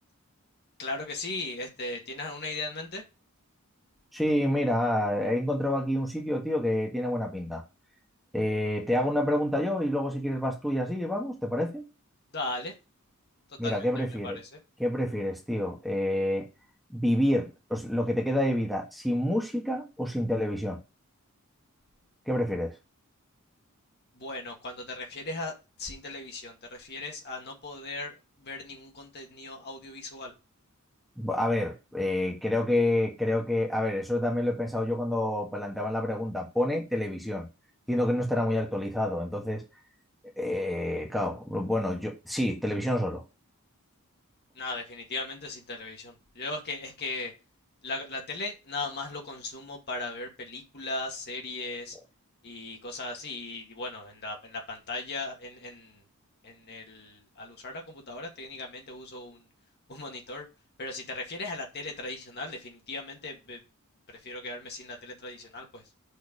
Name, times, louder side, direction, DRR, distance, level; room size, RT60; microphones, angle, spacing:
voice 1, 0.8-3.0 12.3-12.8 13.6-14.6 24.1-25.5 25.8-30.3 44.5-47.3 47.8-52.0 52.4-56.0 56.4-59.4 59.9-60.5 60.8-63.6 64.1-65.8, left 2 dB, 45° left, 2.1 m, -38 dB
voice 2, 4.1-7.6 8.3-11.8 13.6-14.4 14.8-16.5 16.9-20.8 22.3-22.7 31.2-37.4 37.9-39.6 40.4-43.2, left 1 dB, ahead, 1.6 m, -28 dB
6.5 x 4.6 x 5.5 m
head